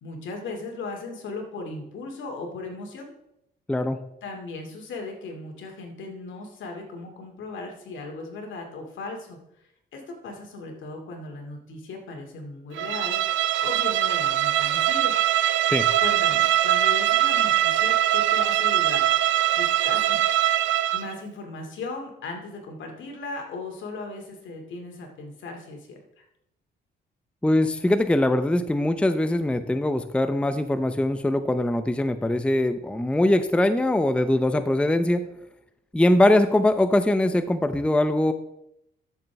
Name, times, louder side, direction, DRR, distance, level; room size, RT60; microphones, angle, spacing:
voice 1, 0.0-3.1 4.2-9.4 9.9-13.2 13.6-15.1 16.0-19.1 19.5-20.2 20.9-26.2, left 3 dB, 75° left, 2 dB, 2.5 m, -37 dB
voice 2, 3.7-4.0 15.7-15.9 27.4-35.3 35.9-38.3, left 1 dB, 5° left, 10 dB, 0.6 m, -22 dB
Bowed string instrument, 12.8-21.1, right 12 dB, 75° right, 0.6 m, -22 dB
13.0 x 6.9 x 3.4 m, 0.81 s
cardioid pair, 90°, 20 cm